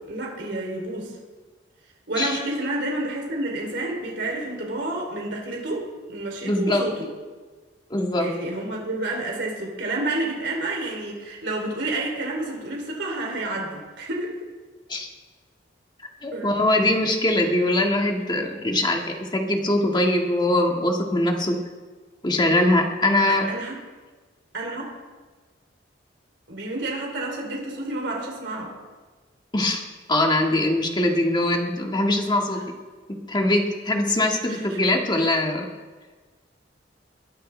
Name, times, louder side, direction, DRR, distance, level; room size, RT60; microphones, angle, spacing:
voice 1, 0.1-1.1 2.1-7.1 8.2-14.4 16.3-16.6 23.3-23.7 24.5-24.9 26.5-28.7 34.5-34.8, right 2 dB, 70° right, -1 dB, 3.2 m, -29 dB
voice 2, 6.4-6.9 7.9-8.3 14.9-15.1 16.2-21.6 22.2-23.5 29.5-29.8 30.1-32.6 33.3-35.7, left 1 dB, 25° left, 1 dB, 1.8 m, -22 dB
21.5 x 12.0 x 3.4 m, 1.3 s
head